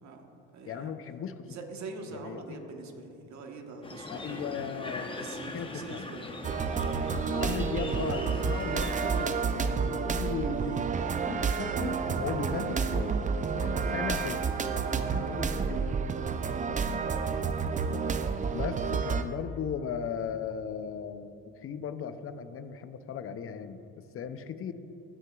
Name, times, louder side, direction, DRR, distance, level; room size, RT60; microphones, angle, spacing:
voice 1, 0.0-0.9 1.5-4.5 5.1-6.3 16.3-16.8, right 3 dB, 55° right, 3 dB, 1.3 m, -45 dB
voice 2, 0.7-1.5 2.1-2.6 4.1-6.1 7.3-13.2 13.5-14.4 14.7-15.8 18.5-21.3 21.6-23.8 24.1-24.7, left 7 dB, 40° left, 11 dB, 0.6 m, -37 dB
sound 1, 3.8-9.3, left 2 dB, 15° left, 0.9 m, -41 dB
sound 2, 6.4-19.2, right 5 dB, 25° right, 0.4 m, -30 dB
15.5 x 6.2 x 2.4 m, 2.8 s
supercardioid pair, 70°, 33 cm